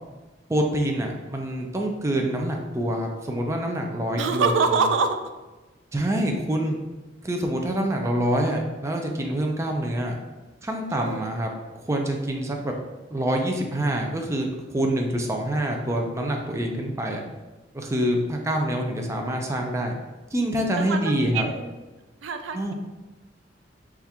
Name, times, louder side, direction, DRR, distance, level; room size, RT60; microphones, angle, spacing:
voice 1, 0.5-4.8 5.9-6.8 7.2-10.2 10.6-11.5 11.8-12.7 13.1-17.2 17.7-20.0 20.3-21.5 22.5-22.7, right 1 dB, 15° right, 2 dB, 0.4 m, -26 dB
voice 2, 4.2-5.2 10.9-11.3 20.7-21.7 22.2-22.6, right 4 dB, 90° right, 7 dB, 0.4 m, -25 dB
4.2 x 2.4 x 3.4 m, 1.2 s
head